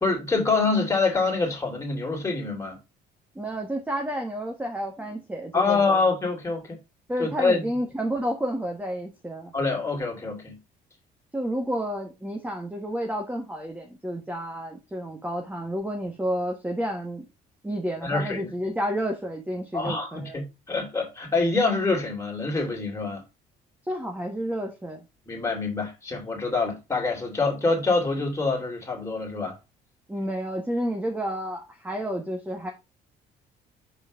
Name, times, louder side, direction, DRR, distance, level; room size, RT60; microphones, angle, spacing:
voice 1, 0.0-2.8 5.5-6.8 7.2-7.6 9.5-10.6 18.0-18.5 19.7-23.2 25.3-29.6, left 3 dB, 15° left, 2.9 m, -25 dB
voice 2, 3.3-6.0 7.1-9.5 11.3-17.2 17.6-20.4 23.9-25.0 30.1-32.7, equal, 10° right, 1.4 m, -30 dB
5.7 x 4.3 x 4.9 m
cardioid pair, 110°, 17 cm